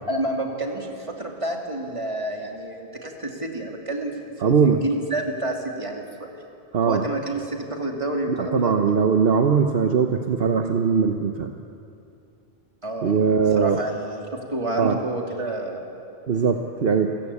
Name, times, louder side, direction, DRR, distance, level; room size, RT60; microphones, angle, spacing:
voice 1, 0.1-6.3 6.9-8.8 12.8-15.9, right 1 dB, 30° right, 1 dB, 2.6 m, -29 dB
voice 2, 4.4-4.8 6.7-7.0 8.3-11.5 13.0-13.8 14.8-15.0 16.3-17.2, right 6 dB, 65° right, 5 dB, 1.1 m, -20 dB
28.5 x 15.5 x 8.4 m, 2.7 s
omnidirectional pair, 1.1 m